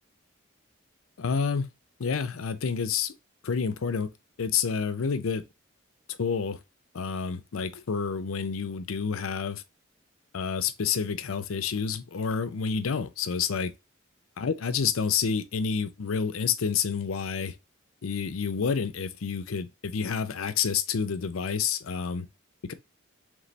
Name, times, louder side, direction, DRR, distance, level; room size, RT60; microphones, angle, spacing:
voice 1, 1.2-1.7 2.0-3.1 3.4-4.1 4.4-5.4 6.2-6.6 6.9-9.6 10.3-13.7 14.4-17.5 18.0-22.3 22.6-22.7, left 6 dB, 90° left, 0.6 m, -29 dB
4.0 x 3.3 x 3.3 m
head